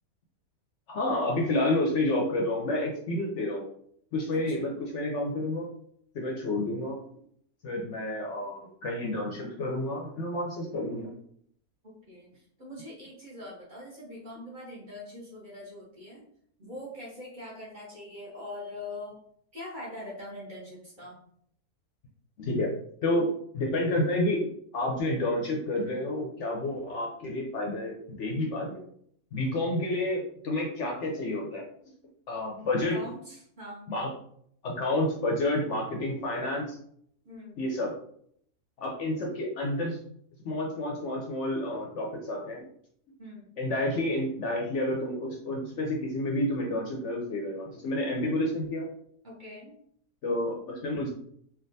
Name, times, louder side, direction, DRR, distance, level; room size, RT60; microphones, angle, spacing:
voice 1, 0.9-3.6 4.1-5.7 6.1-7.0 7.6-11.1 22.4-22.7 23.0-23.3 23.5-24.4 24.7-28.8 29.3-31.6 32.3-33.0 33.9-34.1 34.6-36.8 37.6-37.9 38.8-40.0 40.4-42.7 43.6-48.9 50.2-51.1, left 1 dB, 65° left, -1 dB, 0.8 m, -29 dB
voice 2, 4.3-4.8 12.1-16.2 16.6-19.2 19.5-21.2 32.9-33.9 37.2-37.6 43.2-43.6 49.2-49.7, left 1 dB, 35° right, -5 dB, 1.0 m, -43 dB
3.4 x 2.4 x 2.6 m, 0.66 s
omnidirectional pair, 1.5 m